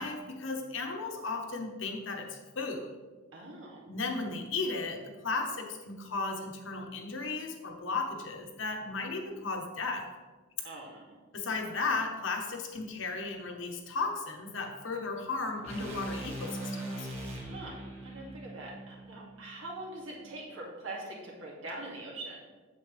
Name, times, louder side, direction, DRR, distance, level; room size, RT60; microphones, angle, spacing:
voice 1, 0.0-3.0 3.9-10.1 11.3-17.1, left 3 dB, 70° left, 3 dB, 1.1 m, -35 dB
voice 2, 3.3-3.8 10.6-11.2 17.4-22.4, right 2 dB, 75° right, -4 dB, 2.4 m, -43 dB
sound 1, 15.6-19.8, right 1 dB, 30° right, 1.6 m, -41 dB
8.4 x 7.2 x 3.3 m, 1.3 s
head